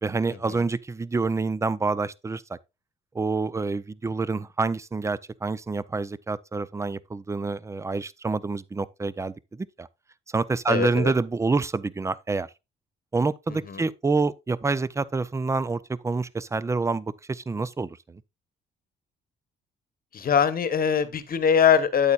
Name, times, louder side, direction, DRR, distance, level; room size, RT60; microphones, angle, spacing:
voice 1, 0.0-2.6 3.1-9.9 10.3-12.5 13.1-18.2, right 3 dB, 15° right, 0.4 m, -27 dB
voice 2, 10.7-11.1 13.5-13.8 20.1-22.1, left 7 dB, 45° left, 1.1 m, -22 dB
8.6 x 8.4 x 2.3 m
cardioid pair, 90°, 20 cm